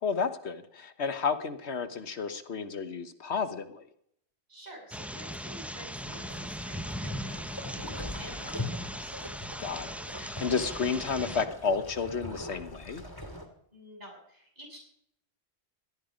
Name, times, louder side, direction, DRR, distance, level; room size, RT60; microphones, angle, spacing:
voice 1, 0.0-3.8 9.6-13.0, left 5 dB, 85° left, 11 dB, 1.5 m, -32 dB
voice 2, 4.5-9.2 13.7-14.8, equal, 40° right, -1 dB, 7.6 m, -49 dB
sound 1, 4.9-11.5, equal, ahead, 0.7 m, -39 dB
sound 2, 6.0-13.5, left 1 dB, 20° left, 2.6 m, -41 dB
17.5 x 13.5 x 5.1 m, 0.70 s
omnidirectional pair, 1.1 m